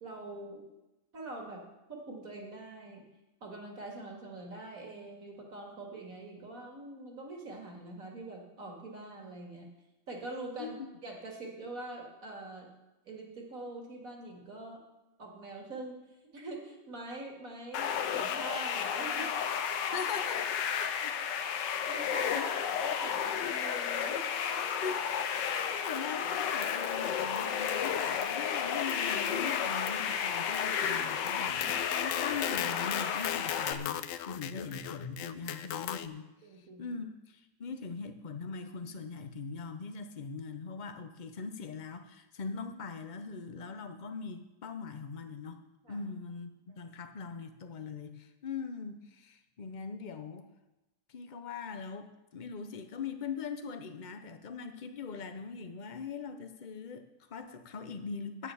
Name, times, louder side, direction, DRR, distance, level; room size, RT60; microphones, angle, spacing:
voice 1, 0.0-0.6 1.1-3.1 3.4-9.7 10.1-12.7 13.1-14.8 15.2-16.0 16.3-19.3 19.7-19.8 21.9-22.4 22.8-24.6 35.5-35.6 36.4-36.9 45.8-46.0 46.6-46.9, right 2 dB, 45° right, 1 dB, 2.5 m, -44 dB
sound 1, 17.7-33.7, left 8 dB, 70° left, 1.4 m, -32 dB
voice 2, 19.9-20.5 20.8-21.1 22.2-22.7 24.8-25.0 25.8-36.2 36.6-45.6 45.9-50.5 51.1-58.5, left 5 dB, 45° left, 8 dB, 0.6 m, -41 dB
sound 2, 25.8-26.4 26.6-27.1 27.4-28.5 28.9-36.1, left 10 dB, 90° left, 0.7 m, -39 dB
9.8 x 9.3 x 7.0 m, 1.0 s
omnidirectional pair, 2.0 m